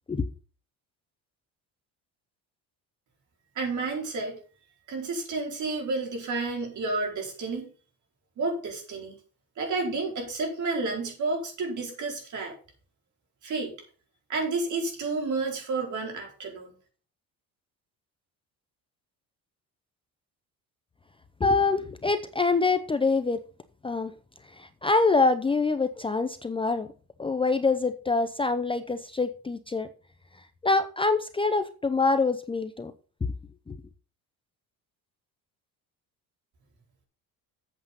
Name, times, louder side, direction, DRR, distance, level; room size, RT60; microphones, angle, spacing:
voice 1, 3.5-4.4 4.9-7.7 8.4-9.1 9.6-12.5 13.4-13.7 14.3-16.7, right 3 dB, 50° right, 1 dB, 4.7 m, -30 dB
voice 2, 21.4-23.4 23.8-24.1 24.5-26.9 27.2-29.9 30.6-32.9 33.7-33.8, left 3 dB, 15° left, 10 dB, 0.6 m, -25 dB
8.2 x 7.3 x 5.5 m, 0.38 s
cardioid pair, 120°, 37 cm